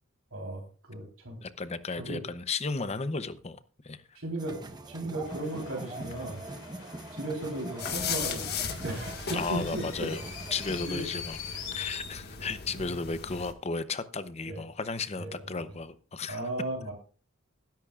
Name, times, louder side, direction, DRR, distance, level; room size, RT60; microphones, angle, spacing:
voice 1, 0.3-0.6 0.9-1.4 2.0-2.2 4.2-4.6 4.9-6.4 7.1-10.1 10.9-11.0 11.6-11.9 12.8-12.9 14.4-14.6 15.2-15.3 16.3-16.9, right 1 dB, 75° right, 0 dB, 3.8 m, -36 dB
voice 2, 1.4-4.2 9.3-11.4 11.7-16.5, left 4 dB, 30° left, 13 dB, 0.7 m, -34 dB
sound 1, 4.4-10.9, right 2 dB, 20° right, 1.1 m, -42 dB
sound 2, 5.2-12.1, left 8 dB, 75° left, 3.7 m, -44 dB
sound 3, 7.8-13.5, left 6 dB, 50° left, 1.7 m, -37 dB
20.5 x 10.5 x 2.4 m, 0.39 s
head